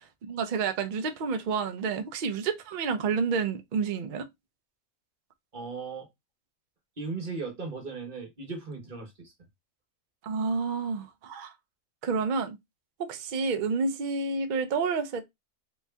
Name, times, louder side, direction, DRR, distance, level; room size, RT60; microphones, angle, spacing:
voice 1, 0.2-4.3 10.2-11.5 12.0-12.6 13.0-15.2, right 5 dB, 60° right, 0.5 m, -29 dB
voice 2, 5.5-6.1 7.0-9.3, right 4 dB, 35° right, 1.4 m, -37 dB
3.1 x 2.7 x 3.3 m
omnidirectional pair, 1.4 m